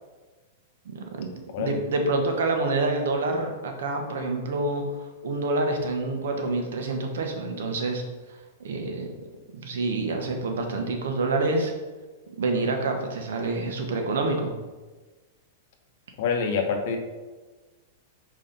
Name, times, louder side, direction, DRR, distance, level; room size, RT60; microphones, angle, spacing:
voice 1, 0.8-4.8 5.2-8.0 8.6-9.1 9.5-11.7 12.4-14.5, right 2 dB, 85° right, 3 dB, 1.2 m, -27 dB
voice 2, 16.2-17.0, left 5 dB, 55° left, 4 dB, 1.0 m, -26 dB
4.8 x 4.1 x 5.8 m, 1.3 s
supercardioid pair, 150°, 0 cm